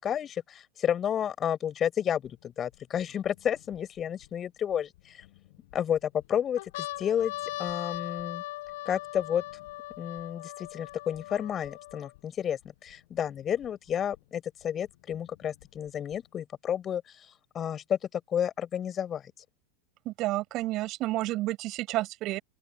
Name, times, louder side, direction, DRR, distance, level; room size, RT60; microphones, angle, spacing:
voice 1, 0.0-5.2 5.7-6.6 7.0-8.4 8.9-9.4 10.0-17.3 17.5-19.2, left 9 dB, 25° left, 5.6 m, -31 dB
sound 1, 2.3-2.4 3.0-4.3 5.0-5.8 6.2-6.3 6.6-12.2 12.9-13.0 13.2-14.2 15.1-16.2, left 18 dB, 50° left, 7.8 m, -40 dB
voice 2, 20.1-22.4, right 17 dB, 35° right, 7.7 m, -30 dB
open air
figure-of-eight pair, 90°, 0 cm